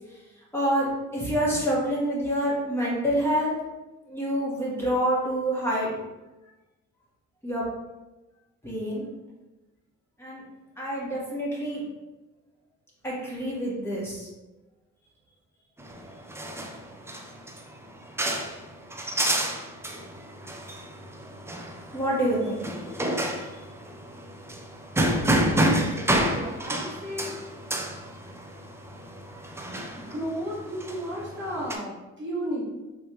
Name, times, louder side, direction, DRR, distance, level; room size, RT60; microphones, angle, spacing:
voice 1, 0.5-3.5 4.1-5.9 7.4-7.6 8.6-9.0 10.2-10.4 10.8-11.8 13.0-14.3 21.9-22.6, equal, 10° left, -7 dB, 1.4 m, -27 dB
sound 1, 15.8-31.8, right 1 dB, 10° right, 0.5 m, -29 dB
voice 2, 25.7-27.3 30.1-32.6, equal, 40° right, -5 dB, 1.3 m, -34 dB
3.4 x 3.3 x 2.9 m, 1.1 s
cardioid pair, 90°, 30 cm